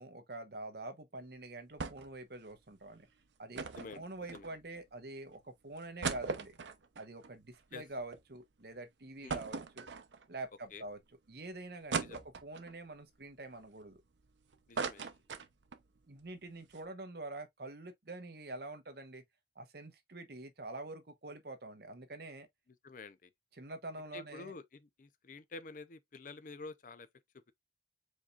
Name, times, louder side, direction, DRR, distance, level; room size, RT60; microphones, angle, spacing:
voice 1, 0.0-3.1 3.4-6.6 7.0-9.9 10.3-11.0 11.3-14.0 16.1-19.2 19.6-22.5 23.5-24.5, right 2 dB, 60° right, 1.0 m, -46 dB
sound 1, 1.8-2.2 2.5-2.6 3.5-4.8 5.3-5.4 5.8-8.2 8.6-8.7 9.3-10.4 10.9-11.0 11.9-12.7 13.3-14.3 14.5-15.9 16.2-16.3 16.6-16.8, right 5 dB, 90° right, 0.7 m, -39 dB
voice 2, 14.7-15.1 22.8-23.3 24.1-27.1, left 3 dB, 50° left, 0.5 m, -48 dB
5.0 x 4.1 x 2.4 m
head